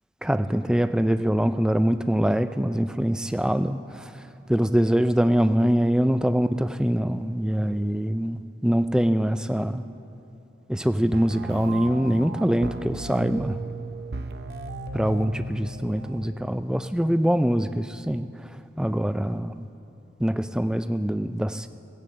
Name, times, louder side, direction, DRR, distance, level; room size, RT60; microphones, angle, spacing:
voice 1, 0.2-4.2 4.5-9.8 10.7-13.6 14.9-19.7 20.2-21.7, equal, 5° right, 10 dB, 0.3 m, -24 dB
sound 1, 11.1-17.1, right 1 dB, 65° right, 0.7 m, -36 dB
17.5 x 8.7 x 7.5 m, 3.0 s
head